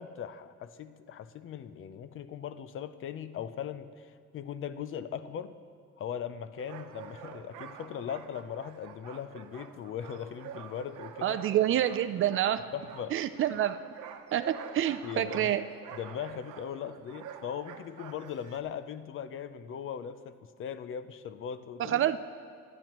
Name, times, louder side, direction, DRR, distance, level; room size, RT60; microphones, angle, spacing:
voice 1, 0.0-5.5 6.0-11.4 12.7-13.2 15.0-15.6 15.9-22.0, left 8 dB, 40° left, 12 dB, 0.5 m, -39 dB
sound 1, 6.6-18.6, right 8 dB, 70° right, 0.9 m, -47 dB
voice 2, 11.2-12.7 13.1-13.8 14.3-15.7 21.8-22.2, right 11 dB, 40° right, 11 dB, 0.4 m, -27 dB
25.0 x 11.0 x 3.0 m, 2.1 s
cardioid pair, 165°, 31 cm